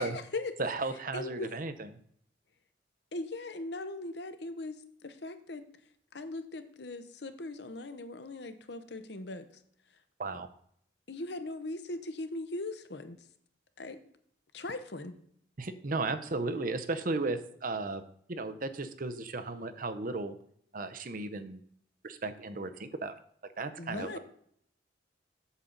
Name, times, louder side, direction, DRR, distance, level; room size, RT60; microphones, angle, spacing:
voice 1, 0.0-0.5 1.1-1.5 3.1-4.8 5.0-5.6 6.1-9.4 11.1-13.2 13.8-14.0 14.5-15.1 23.8-24.2, left 2 dB, 60° left, 10 dB, 0.9 m, -39 dB
voice 2, 0.6-1.7 10.2-10.5 15.6-18.0 18.3-20.4 20.7-21.6 22.0-23.1 23.6-24.2, right 3 dB, 45° right, 10 dB, 0.7 m, -35 dB
8.2 x 7.3 x 3.9 m, 0.65 s
head